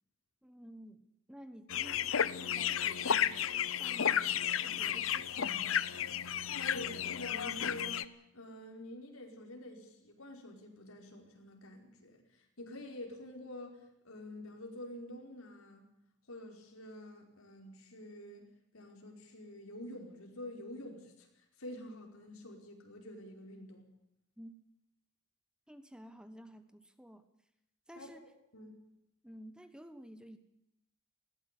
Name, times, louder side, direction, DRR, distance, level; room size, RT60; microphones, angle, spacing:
voice 1, 0.4-1.0 1.3-5.9 24.4-24.6 25.7-27.3 27.9-28.3 29.2-30.4, equal, 5° right, 10 dB, 1.3 m, -53 dB
sound 1, 1.7-8.0, left 9 dB, 70° left, 0.7 m, -33 dB
voice 2, 6.7-15.9 16.3-18.5 18.7-21.3 21.6-23.9 28.0-28.1 28.5-28.7, left 1 dB, 90° left, 2 dB, 5.0 m, -48 dB
20.5 x 17.0 x 8.4 m, 0.80 s
head